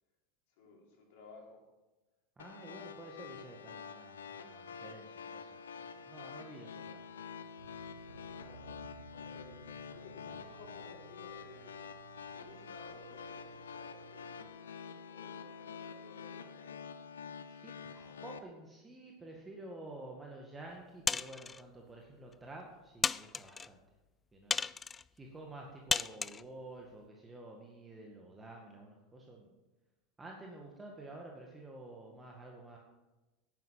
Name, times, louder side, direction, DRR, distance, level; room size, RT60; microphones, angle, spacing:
voice 1, 0.6-1.6 8.0-8.8 9.1-11.9 12.3-17.1, left 3 dB, 65° left, -1 dB, 3.9 m, -57 dB
sound 1, 2.4-18.4, left 6 dB, 80° left, 0.7 m, -47 dB
voice 2, 2.4-7.5 10.3-10.4 17.4-23.8 24.3-24.6 25.1-29.5 30.2-32.8, right 2 dB, 15° right, 0 dB, 2.0 m, -50 dB
sound 2, 7.6-14.5, right 7 dB, 85° right, 0.6 m, -58 dB
sound 3, 21.1-21.6 22.3-22.4 23.0-23.7 24.5-25.0 25.9-26.4, left 5 dB, 20° left, 0.3 m, -34 dB
10.5 x 10.0 x 5.8 m, 1.1 s
hypercardioid pair, 85°, 0 cm